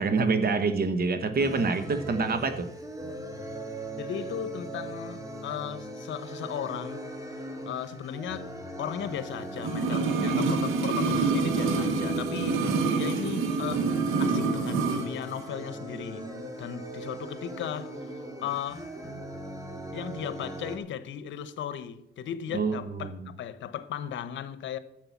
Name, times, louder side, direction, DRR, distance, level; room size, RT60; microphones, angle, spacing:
voice 1, 0.0-2.7 12.6-12.7 22.5-23.2, right 4 dB, 50° right, 1.3 m, -26 dB
sound 1, 1.4-20.8, right 1 dB, 15° right, 2.2 m, -39 dB
voice 2, 4.0-7.1 7.4-13.9 14.2-16.3 16.6-18.9 19.9-24.8, left 9 dB, 70° left, 0.9 m, -36 dB
sound 2, 9.6-15.1 15.3-15.4, right 4 dB, 90° right, 1.2 m, -26 dB
11.5 x 7.8 x 7.1 m
cardioid pair, 90°, 20 cm